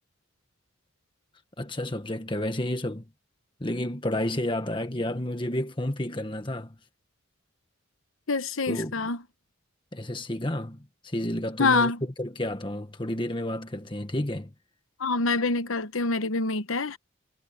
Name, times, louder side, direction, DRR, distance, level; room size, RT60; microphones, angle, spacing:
voice 1, 1.6-3.0 3.6-6.8 8.7-9.1 9.9-11.9 12.2-14.5, left 1 dB, 25° left, 1.6 m, -31 dB
voice 2, 8.3-9.2 11.6-12.0 15.0-17.0, left 3 dB, 85° left, 1.1 m, -25 dB
head